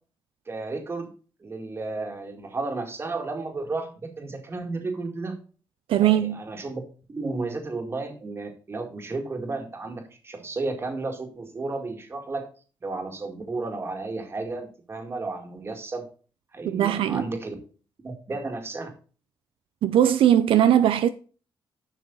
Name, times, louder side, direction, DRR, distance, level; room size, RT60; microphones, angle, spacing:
voice 1, 0.5-1.1 1.4-5.4 6.0-6.8 7.1-12.5 12.8-16.0 16.5-17.6 18.0-18.9, right 3 dB, 25° right, 2.2 m, -33 dB
voice 2, 5.9-6.4 16.6-17.3 19.8-21.1, right 11 dB, 80° right, 0.6 m, -20 dB
11.0 x 6.1 x 4.0 m
cardioid pair, 140°, 9 cm